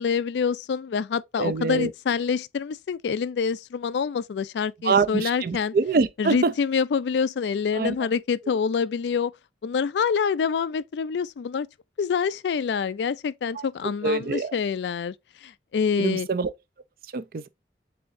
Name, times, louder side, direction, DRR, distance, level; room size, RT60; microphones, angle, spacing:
voice 1, 0.0-5.7 6.2-9.3 9.6-11.7 12.0-15.1 15.4-16.3, left 6 dB, 80° left, 0.3 m, -26 dB
voice 2, 1.4-1.9 4.8-6.5 7.7-8.0 13.5-13.7 14.0-14.6 16.0-16.5 17.1-17.5, right 4 dB, 55° right, 0.4 m, -25 dB
7.6 x 2.8 x 2.5 m
head